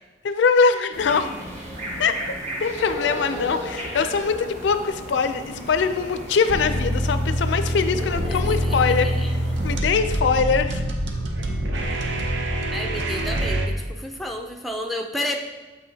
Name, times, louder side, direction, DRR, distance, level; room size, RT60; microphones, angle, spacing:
voice 1, 0.2-1.3 2.0-2.2 2.6-10.8, left 5 dB, 70° left, 10 dB, 0.4 m, -22 dB
sound 1, 0.9-9.8, equal, 35° right, 1.1 m, -34 dB
sound 2, 6.5-13.7, right 1 dB, 70° right, 0.7 m, -25 dB
voice 2, 8.2-9.6 12.7-15.4, left 1 dB, ahead, 3 dB, 0.3 m, -32 dB
7.1 x 5.6 x 2.7 m, 1.3 s
head